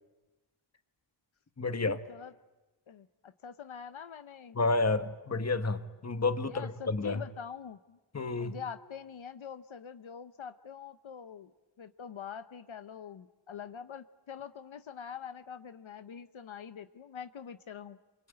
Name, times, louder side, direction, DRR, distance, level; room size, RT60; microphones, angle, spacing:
voice 1, 1.6-2.0 4.5-7.2 8.1-8.6, left 3 dB, 35° left, 10 dB, 1.3 m, -30 dB
voice 2, 2.9-4.6 6.4-8.0 8.4-11.5 11.8-18.0, left 7 dB, 75° left, 10 dB, 0.9 m, -44 dB
28.0 x 24.0 x 8.8 m, 1.1 s
wide cardioid pair, 100°, 48 cm